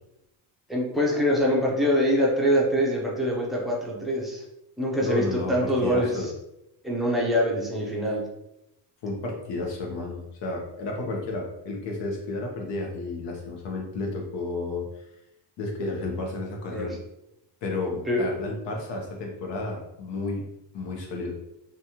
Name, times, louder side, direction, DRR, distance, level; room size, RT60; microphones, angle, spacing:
voice 1, 0.7-4.4 4.8-6.3 6.8-8.2 16.7-17.0 18.1-18.2, equal, ahead, -4 dB, 0.5 m, -24 dB
voice 2, 5.0-6.3 9.0-14.8 15.6-16.9 17.6-20.4 20.7-21.3, left 2 dB, 65° left, 0 dB, 0.9 m, -32 dB
3.1 x 2.4 x 2.8 m, 0.88 s
cardioid pair, 145°, 46 cm